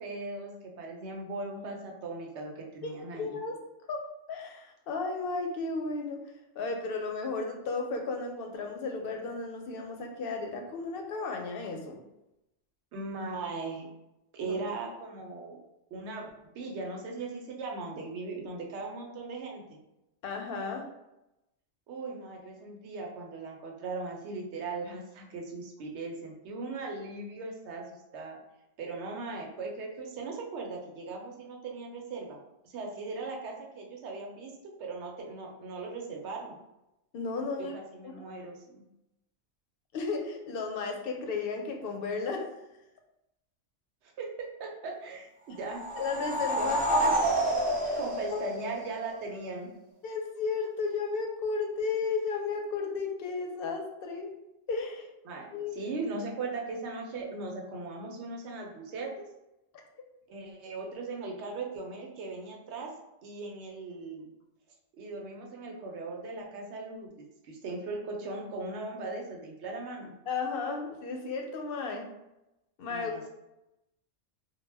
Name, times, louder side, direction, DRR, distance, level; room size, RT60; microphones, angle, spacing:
voice 1, 0.0-3.4 12.9-13.9 14.3-15.6 15.9-19.8 21.9-28.4 28.8-32.4 32.6-34.5 34.8-36.6 37.6-38.9 44.2-45.8 46.5-46.7 48.0-49.7 55.2-55.5 55.7-59.1 60.3-62.9 63.2-64.3 65.0-67.1 67.4-70.1 72.9-73.3, right 3 dB, 75° right, 0 dB, 0.9 m, -38 dB
voice 2, 3.2-3.6 3.9-4.0 4.3-6.2 6.6-12.0 14.4-14.6 20.2-20.8 37.1-37.7 39.9-42.5 46.0-47.2 47.8-48.0 48.3-48.4 50.0-54.3 54.7-55.1 55.5-55.8 70.3-72.1 72.8-73.2, left 4 dB, 60° left, 2 dB, 0.7 m, -34 dB
sound 1, 45.6-49.2, right 1 dB, 15° right, 0.4 m, -29 dB
2.2 x 2.1 x 3.2 m, 0.92 s
omnidirectional pair, 1.2 m